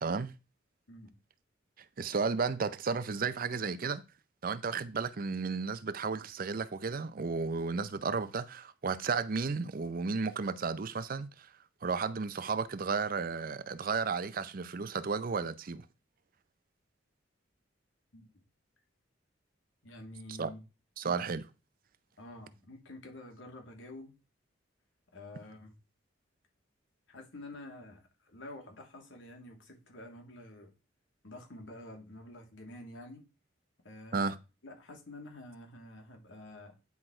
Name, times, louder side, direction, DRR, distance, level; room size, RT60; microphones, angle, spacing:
voice 1, 0.0-0.3 2.0-4.0 4.4-11.5 11.8-15.8 20.4-20.5 21.0-21.5 34.1-34.4, right 5 dB, 50° right, 0.5 m, -33 dB
voice 2, 19.8-20.6 22.2-24.1 25.1-25.7 27.1-30.7 31.2-33.2 33.8-34.3 34.6-36.7, left 1 dB, 90° left, 2.3 m, -48 dB
9.5 x 4.3 x 4.4 m
head